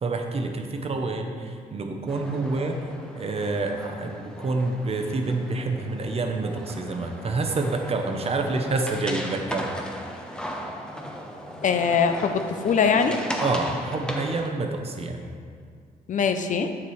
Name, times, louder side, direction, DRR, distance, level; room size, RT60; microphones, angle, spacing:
voice 1, 0.0-9.7 13.4-15.3, right 3 dB, 40° right, 4 dB, 0.7 m, -28 dB
sound 1, 2.1-14.5, equal, 5° left, 0.7 m, -36 dB
voice 2, 11.6-13.2 16.1-16.7, left 6 dB, 55° left, 7 dB, 0.5 m, -22 dB
7.3 x 6.8 x 3.2 m, 2.1 s
cardioid pair, 100°, 16 cm